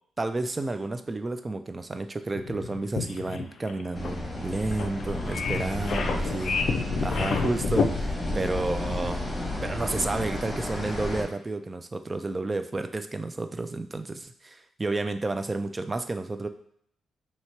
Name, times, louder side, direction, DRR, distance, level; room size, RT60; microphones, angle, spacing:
voice 1, 0.2-6.6 7.0-9.3 9.6-16.5, right 2 dB, 20° right, 8 dB, 0.3 m, -31 dB
sound 1, 2.3-7.9, left 5 dB, 60° left, 0.4 m, -29 dB
sound 2, 3.9-11.2, left 1 dB, 10° left, 1.0 m, -32 dB
2.9 x 2.8 x 4.4 m, 0.67 s
cardioid pair, 120°, 0 cm